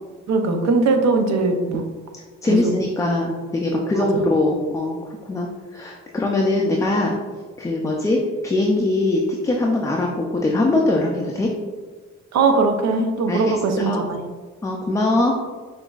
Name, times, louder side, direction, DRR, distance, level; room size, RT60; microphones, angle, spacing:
voice 1, 0.3-1.8 2.5-2.7 12.3-14.3, right 3 dB, 60° right, 5 dB, 0.6 m, -20 dB
voice 2, 2.4-5.0 5.3-7.2 7.6-11.5 13.3-14.0 14.6-15.4, left 2 dB, 10° left, -1 dB, 0.4 m, -21 dB
5.7 x 2.6 x 2.3 m, 1.4 s
cardioid pair, 90°, 30 cm